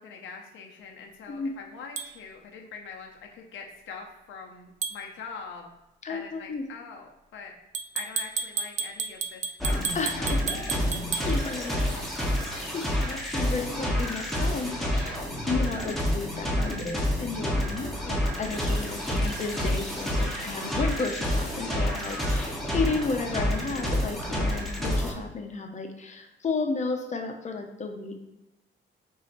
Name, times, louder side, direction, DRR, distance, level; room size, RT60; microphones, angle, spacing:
voice 1, 0.0-5.7 6.1-7.5 7.9-11.4 11.7-12.1, left 5 dB, 75° left, 2 dB, 0.7 m, -43 dB
sound 1, 2.0-2.1 4.8-5.0 7.7-11.3, right 5 dB, 40° right, 0.4 m, -32 dB
voice 2, 6.0-6.6 9.9-10.4 11.3-11.8 12.7-15.1 15.5-28.1, left 4 dB, 35° left, 3 dB, 0.8 m, -33 dB
sound 2, 9.6-25.1, equal, ahead, 1.1 m, -28 dB
4.2 x 2.8 x 4.2 m, 0.98 s
cardioid pair, 90°, 20 cm